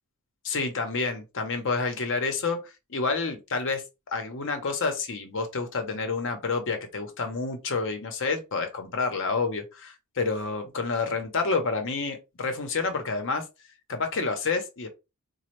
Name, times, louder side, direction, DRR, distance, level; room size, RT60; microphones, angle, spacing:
voice 1, 0.4-3.8 4.1-13.4 13.9-14.9, left 4 dB, 60° left, 0.8 m, -29 dB
4.2 x 2.2 x 3.1 m
head